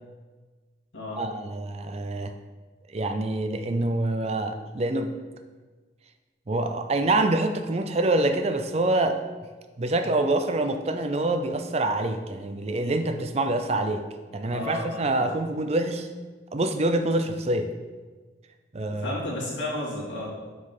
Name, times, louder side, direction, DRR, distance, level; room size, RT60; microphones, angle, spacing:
voice 1, 1.2-2.3 2.9-5.1 6.5-9.2 9.8-14.0 14.3-16.1 16.5-17.7 18.7-19.2, right 2 dB, 35° right, 7 dB, 0.4 m, -26 dB
voice 2, 14.4-15.4 19.0-20.3, left 1 dB, 80° left, -5 dB, 2.4 m, -33 dB
6.1 x 5.1 x 5.4 m, 1.4 s
head